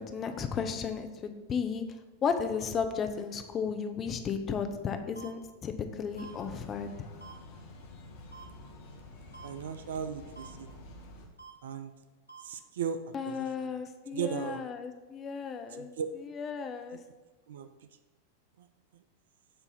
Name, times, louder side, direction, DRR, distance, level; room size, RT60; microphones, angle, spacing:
voice 1, 0.0-1.8 2.2-6.9 13.1-17.0, left 6 dB, 25° left, 7 dB, 0.5 m, -34 dB
sound 1, 5.1-5.3 6.2-6.3 7.2-7.3 8.3-8.4 9.3-9.5 10.4-10.5 11.4-11.5 12.3-12.4, right 6 dB, 80° right, 0.8 m, -47 dB
sound 2, 6.1-11.3, left 2 dB, 50° left, 1.0 m, -49 dB
voice 2, 9.4-10.7 11.6-11.9 12.4-13.0 13.3-13.7 14.1-14.6 15.8-16.1 17.5-17.7, right 7 dB, 60° right, 10 dB, 0.3 m, -36 dB
6.9 x 2.7 x 5.4 m, 1.2 s
figure-of-eight pair, 90°, 0 cm